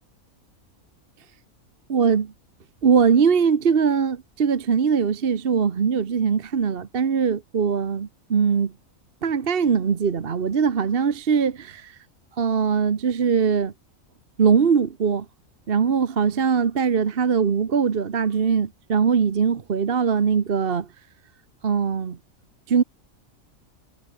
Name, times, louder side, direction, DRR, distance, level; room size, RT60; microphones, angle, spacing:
voice 1, 1.9-2.3 2.8-8.7 9.2-12.0 12.4-13.7 14.4-15.3 15.7-20.9 21.6-22.2 22.7-22.8, right 6 dB, 45° right, 1.2 m, -21 dB
omnidirectional pair, 1.4 m